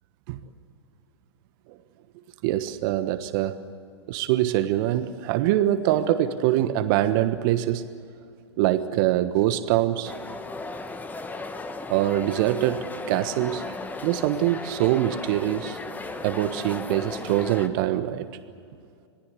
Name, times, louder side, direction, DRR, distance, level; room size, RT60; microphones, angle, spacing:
voice 1, 2.4-3.6 4.1-7.9 8.6-10.1 11.9-13.7 14.0-15.8 16.2-18.3, right 13 dB, 50° right, 10 dB, 1.3 m, -24 dB
sound 1, 10.0-17.7, left 3 dB, 10° left, 1.5 m, -36 dB
26.5 x 19.0 x 8.4 m, 2.3 s
hypercardioid pair, 110°, 14 cm